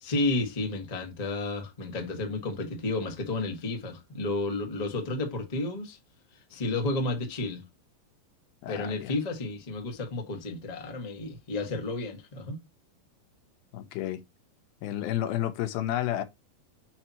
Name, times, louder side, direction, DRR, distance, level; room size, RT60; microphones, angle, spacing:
voice 1, 0.0-6.0 6.5-7.7 8.7-12.6, left 2 dB, 45° left, 0.5 m, -31 dB
voice 2, 8.6-9.1 13.7-14.2 14.8-16.2, left 12 dB, 90° left, 2.8 m, -31 dB
8.4 x 3.0 x 5.6 m
omnidirectional pair, 4.1 m